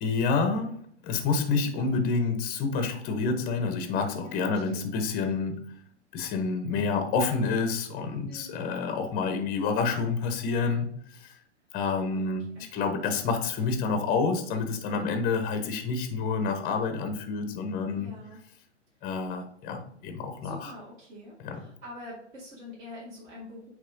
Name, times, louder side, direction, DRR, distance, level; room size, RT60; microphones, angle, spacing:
voice 1, 0.0-5.6 6.1-10.9 11.2-11.3 11.7-12.5 12.7-18.1 19.0-20.7 21.4-21.6, left 4 dB, 25° left, 7 dB, 0.9 m, -28 dB
voice 2, 4.1-4.9 8.3-8.6 12.1-12.8 17.9-18.4 19.0-19.1 20.4-23.7, left 1 dB, 35° right, -7 dB, 2.4 m, -46 dB
8.3 x 3.1 x 3.8 m, 0.67 s
hypercardioid pair, 120°, 36 cm